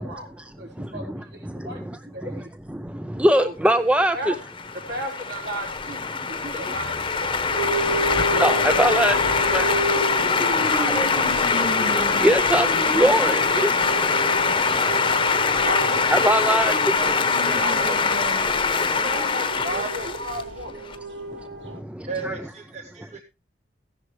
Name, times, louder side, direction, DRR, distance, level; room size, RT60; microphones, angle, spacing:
voice 1, 0.0-2.6 3.3-3.5 4.1-4.4 4.9-7.5 15.6-16.8 17.4-18.0 18.8-21.2 21.7-21.8, equal, 65° right, 5.1 m, -35 dB
voice 2, 0.8-2.0 2.7-4.3 7.8-15.6 16.1-16.7 21.3-21.4 21.6-22.4, right 1 dB, 5° right, 0.5 m, -25 dB
sound 1, 4.3-21.0, left 5 dB, 25° left, 1.0 m, -23 dB
sound 2, 7.5-21.8, right 1 dB, 85° right, 2.3 m, -31 dB
voice 3, 17.4-18.3 19.6-19.9 22.1-23.2, right 4 dB, 40° right, 1.2 m, -34 dB
14.5 x 10.5 x 3.3 m
head